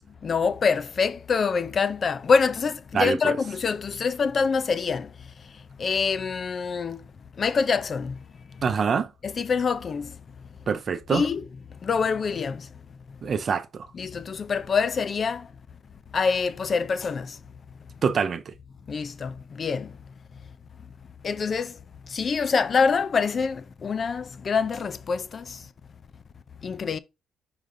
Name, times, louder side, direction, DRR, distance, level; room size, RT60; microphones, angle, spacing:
voice 1, 0.2-5.1 5.8-7.0 7.4-8.2 9.2-10.1 11.1-11.4 11.8-12.7 13.9-15.5 16.1-17.4 18.9-19.9 21.2-21.8 22.1-25.6 26.6-27.0, left 5 dB, 45° left, 0.5 m, -25 dB
voice 2, 2.9-3.4 8.6-9.1 10.7-11.2 13.2-13.9 18.0-18.5, right 6 dB, 50° right, 0.7 m, -25 dB
5.2 x 4.9 x 3.8 m
cardioid pair, 90°, 0 cm